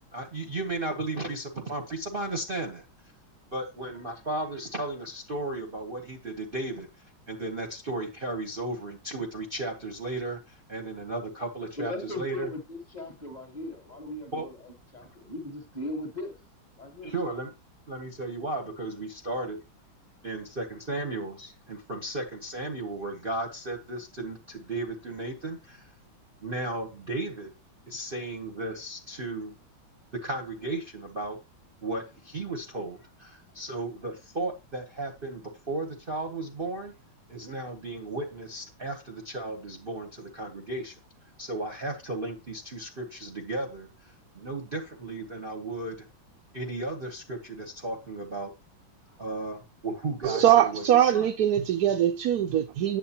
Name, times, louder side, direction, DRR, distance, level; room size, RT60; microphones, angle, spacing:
voice 1, 0.1-2.8 3.5-6.9 7.3-12.5 14.3-14.5 17.0-17.5 17.9-19.6 20.2-25.9 26.4-27.5 27.9-29.5 30.2-31.4 31.8-36.9 37.3-40.9 41.4-46.1 46.5-48.5 49.2-51.3, right 2 dB, 35° right, 1.0 m, -35 dB
voice 2, 11.8-16.4 16.8-17.1 49.1-49.2, left 1 dB, 25° left, 1.2 m, -38 dB
voice 3, 50.2-53.0, right 11 dB, 65° right, 1.0 m, -22 dB
9.4 x 7.7 x 2.9 m
omnidirectional pair, 2.2 m